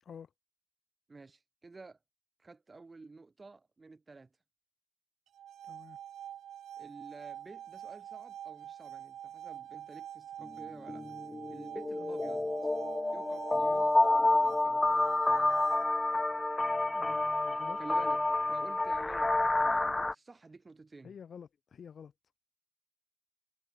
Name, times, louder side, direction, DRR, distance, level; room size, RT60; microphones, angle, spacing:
voice 1, 0.0-0.3 5.7-6.0 12.0-12.2 16.9-17.8 21.0-22.1, left 7 dB, 50° left, 0.9 m, -49 dB
voice 2, 1.1-2.0 2.4-4.3 6.8-11.1 11.5-12.7 13.1-14.9 17.8-21.1, right 3 dB, 25° right, 0.7 m, -51 dB
sound 1, 5.3-16.2, right 10 dB, 70° right, 0.3 m, -46 dB
sound 2, 10.5-10.6 10.9-20.1, left 2 dB, 15° left, 0.3 m, -29 dB
cardioid pair, 90°, 0 cm